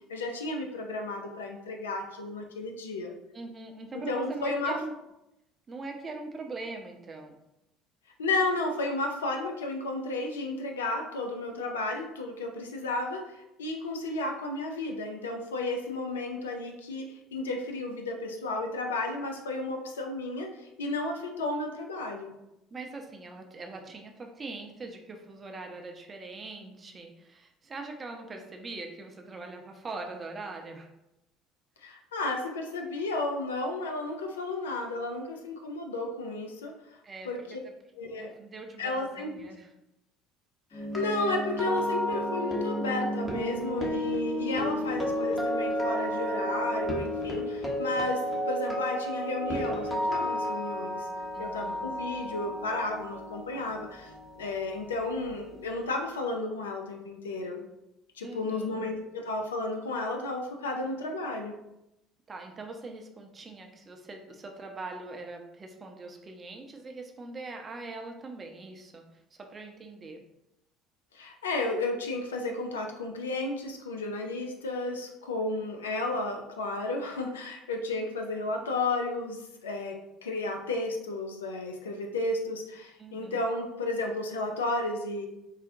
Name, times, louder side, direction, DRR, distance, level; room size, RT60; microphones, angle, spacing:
voice 1, 0.1-3.1 4.1-4.8 8.2-22.3 31.8-36.7 37.2-37.6 38.0-38.3 38.8-39.5 40.7-51.1 51.4-54.1 54.4-57.6 58.2-61.5 71.1-85.3, left 2 dB, 85° left, 3 dB, 0.3 m, -33 dB
voice 2, 3.3-4.9 5.7-7.4 22.7-30.9 37.0-37.3 38.2-39.7 51.3-51.9 58.2-58.9 62.3-70.2 83.0-83.4, right 3 dB, 30° right, 2 dB, 0.6 m, -42 dB
sound 1, 40.7-54.8 55.1-55.3, equal, 20° left, 0.8 m, -32 dB
3.9 x 2.1 x 2.5 m, 0.90 s
hypercardioid pair, 60°, 0 cm